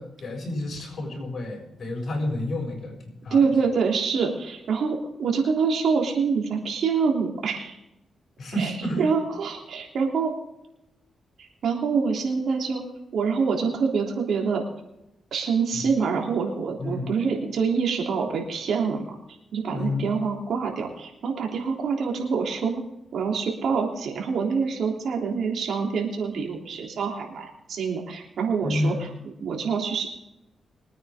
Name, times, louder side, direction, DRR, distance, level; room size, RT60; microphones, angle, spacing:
voice 1, 0.0-3.5 8.4-9.1 15.7-15.9 16.8-17.1 19.7-20.1 28.6-29.0, left 1 dB, 60° left, 0 dB, 6.8 m, -30 dB
voice 2, 3.3-7.7 8.6-8.7 9.0-10.3 11.6-12.9 13.1-14.6 15.3-19.1 19.5-22.8 23.1-28.9 29.4-30.1, right 5 dB, 75° right, 1 dB, 3.4 m, -25 dB
23.5 x 9.4 x 3.7 m, 0.89 s
cardioid pair, 85°, 0 cm